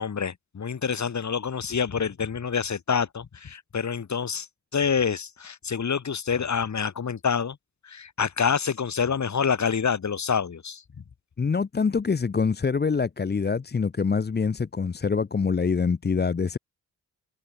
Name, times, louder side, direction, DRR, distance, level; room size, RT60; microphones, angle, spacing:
voice 1, 0.0-4.5 4.7-7.6 7.8-10.8, left 6 dB, 55° left, 6.4 m, -27 dB
voice 2, 11.4-16.6, left 5 dB, 30° left, 0.9 m, -25 dB
cardioid pair, 100°, 34 cm